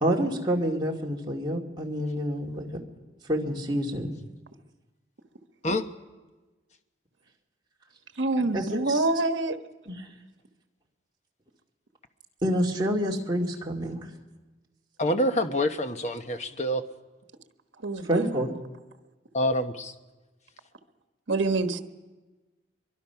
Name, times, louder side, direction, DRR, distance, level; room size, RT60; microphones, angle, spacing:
voice 1, 0.0-2.7 3.3-4.1 8.5-9.0 9.9-10.1 12.4-14.1 18.0-18.5, equal, 25° right, -2 dB, 2.3 m, -28 dB
voice 2, 8.2-9.6 17.8-18.5 21.3-21.8, right 2 dB, 80° right, 8 dB, 1.2 m, -26 dB
voice 3, 15.0-16.8 19.3-19.9, left 1 dB, 40° left, 8 dB, 1.1 m, -26 dB
23.5 x 23.0 x 5.8 m, 1.2 s
head